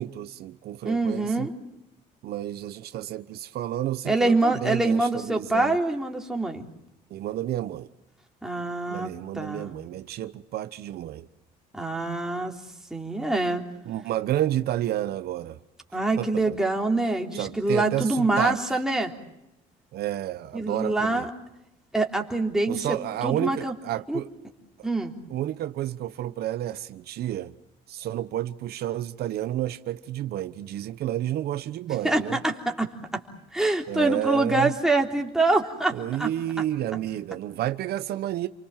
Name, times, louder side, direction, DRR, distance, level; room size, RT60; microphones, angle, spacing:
voice 1, 0.0-1.5 2.2-5.8 7.1-7.9 8.9-11.3 13.9-15.6 16.2-16.6 17.3-18.6 19.9-21.3 22.7-24.3 24.8-24.9 25.3-27.5 27.9-32.4 33.9-34.7 35.9-38.5, right 13 dB, 70° right, 1.1 m, -30 dB
voice 2, 0.8-1.5 4.1-6.6 8.4-9.7 11.7-12.5 12.9-13.6 15.9-19.1 20.5-21.3 21.9-22.9 23.2-23.7 24.1-24.2 24.8-25.1 32.0-32.9 33.5-36.3, right 2 dB, 5° right, 3.7 m, -25 dB
29.0 x 24.5 x 7.4 m
cardioid pair, 110°, 17 cm